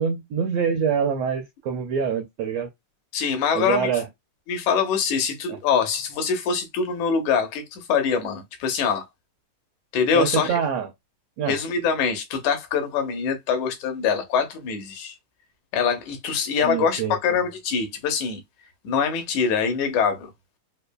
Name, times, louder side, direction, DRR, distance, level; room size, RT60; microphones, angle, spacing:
voice 1, 0.0-2.7 3.5-4.1 5.5-5.6 10.1-10.9 11.4-11.6 16.6-17.2, right 7 dB, 80° right, 1.4 m, -25 dB
voice 2, 3.1-3.9 4.5-9.0 9.9-10.5 11.5-15.1 15.7-18.4 18.8-20.3, left 6 dB, 75° left, 2.2 m, -24 dB
5.4 x 2.3 x 2.2 m
omnidirectional pair, 3.6 m